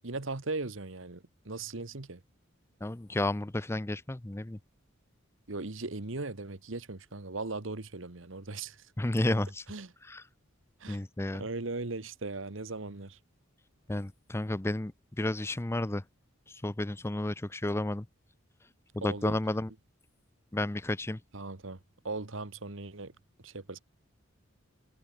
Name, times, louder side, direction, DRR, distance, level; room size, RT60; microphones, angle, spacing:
voice 1, 0.0-2.2 5.5-8.8 9.7-9.9 10.8-11.0 11.4-13.2 19.0-19.3 21.3-21.8 22.0-23.1 23.4-23.8, right 3 dB, 65° right, 1.5 m, -38 dB
voice 2, 2.8-4.6 9.0-9.6 10.1-10.2 10.9-11.4 13.9-14.9 15.2-16.0 16.6-18.0 18.9-19.7 20.5-21.2, left 1 dB, 10° left, 0.5 m, -31 dB
head